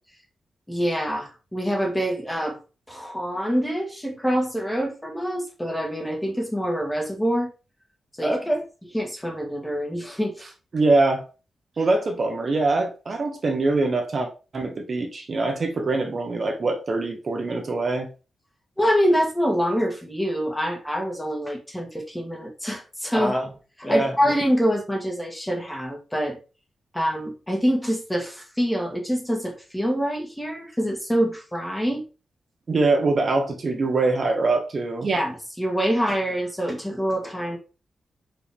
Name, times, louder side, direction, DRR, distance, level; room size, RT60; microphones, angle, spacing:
voice 1, 0.7-2.6 2.9-7.5 8.2-10.4 18.8-26.4 26.9-32.0 35.2-37.6, equal, 5° left, 1.5 m, -25 dB
voice 2, 10.7-11.2 11.8-18.1 32.7-35.2, right 3 dB, 40° right, 0.9 m, -23 dB
5.7 x 5.0 x 3.5 m
wide cardioid pair, 165°, 0 cm